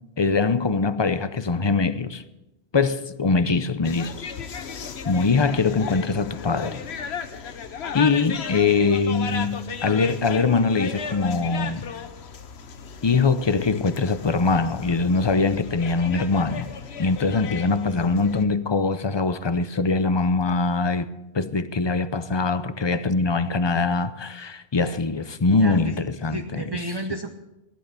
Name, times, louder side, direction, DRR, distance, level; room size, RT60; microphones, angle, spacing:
voice 1, 0.2-2.2 2.7-4.3 5.1-6.8 7.9-11.9 13.0-16.7 17.0-21.1 21.3-26.8, left 4 dB, 30° left, 0.6 m, -22 dB
sound 1, 3.8-18.5, left 6 dB, 70° left, 1.2 m, -35 dB
voice 2, 25.5-26.0 26.3-27.3, right 1 dB, 25° right, 0.7 m, -32 dB
16.5 x 11.5 x 6.9 m
omnidirectional pair, 1.1 m